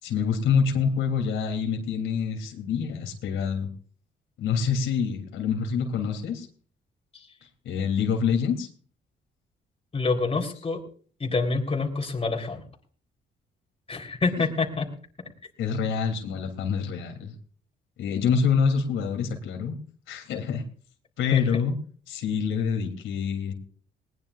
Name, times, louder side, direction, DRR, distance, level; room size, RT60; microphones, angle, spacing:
voice 1, 0.0-3.7 4.4-6.5 7.6-8.7 15.6-17.3 18.0-19.7 20.1-20.6 21.2-21.7 22.1-23.5, left 6 dB, 85° left, 3 dB, 3.0 m, -26 dB
voice 2, 9.9-10.8 11.2-12.6 13.9-14.9 21.3-21.4, left 3 dB, 30° left, 3 dB, 3.6 m, -27 dB
20.0 x 19.5 x 2.5 m, 0.43 s
cardioid pair, 90°, 20 cm